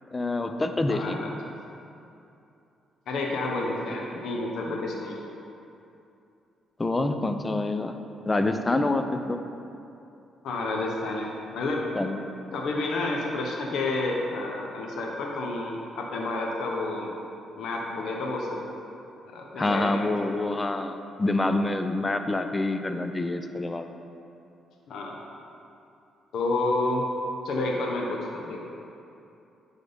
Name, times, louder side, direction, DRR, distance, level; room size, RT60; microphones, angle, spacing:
voice 1, 0.1-1.3 6.8-7.9 8.3-9.4 11.9-12.2 19.6-23.9, left 2 dB, 20° left, 7 dB, 0.5 m, -27 dB
voice 2, 0.9-1.4 3.1-5.2 10.4-11.9 12.5-17.1 17.6-18.6 19.2-20.1 24.9-25.2 26.3-27.0 27.4-28.6, left 2 dB, 75° left, -1 dB, 0.8 m, -30 dB
9.5 x 3.6 x 5.5 m, 2.7 s
cardioid pair, 90°, 0 cm